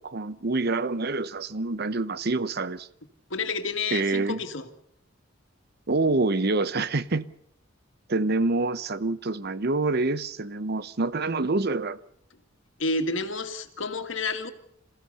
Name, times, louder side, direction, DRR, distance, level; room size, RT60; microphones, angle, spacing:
voice 1, 0.0-2.9 3.9-4.4 5.9-7.3 8.1-12.0, right 3 dB, 55° right, 0.8 m, -26 dB
voice 2, 3.3-4.7 12.8-14.5, left 3 dB, 75° left, 2.2 m, -30 dB
27.0 x 16.0 x 6.9 m
head